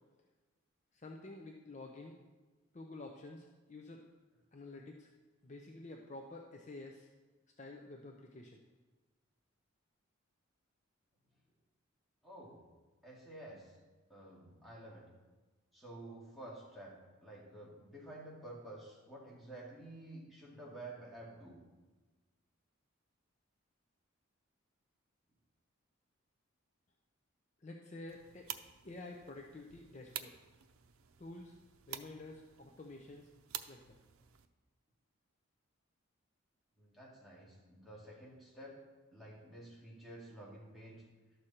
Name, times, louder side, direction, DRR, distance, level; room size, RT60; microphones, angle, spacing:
voice 1, 0.9-2.2 2.7-4.0 4.5-5.1 5.4-7.1 7.6-8.6 27.6-28.5 28.8-30.4 31.2-31.5 31.9-33.3 33.7-34.0, left 2 dB, 35° left, 1 dB, 0.6 m, -50 dB
voice 2, 12.2-12.6 13.0-13.7 14.1-15.1 15.7-16.9 17.2-21.6 36.8-38.8 39.1-41.0, right 1 dB, ahead, -7 dB, 2.4 m, -51 dB
sound 1, 28.1-34.5, right 10 dB, 90° right, 0.6 m, -50 dB
12.0 x 6.6 x 4.3 m, 1.2 s
head